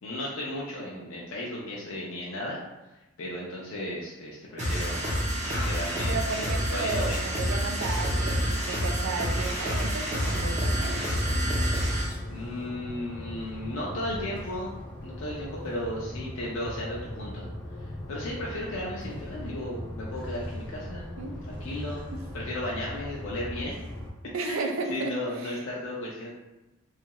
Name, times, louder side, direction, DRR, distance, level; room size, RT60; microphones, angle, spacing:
voice 1, 0.0-2.6 3.2-5.0 5.4-6.2 6.7-7.2 12.3-14.7 15.0-17.5 17.8-21.1 21.4-22.1 22.3-23.8 24.4-26.3, left 1 dB, 70° left, -4 dB, 0.5 m, -35 dB
sound 1, 4.6-12.1, equal, 35° right, 0.7 m, -28 dB
voice 2, 6.1-11.3 21.2-21.4 24.3-25.1 25.4-25.6, right 3 dB, 80° right, 3 dB, 0.4 m, -33 dB
sound 2, 10.4-24.1, left 1 dB, 5° left, 0.5 m, -39 dB
2.7 x 2.3 x 2.9 m, 1.0 s
head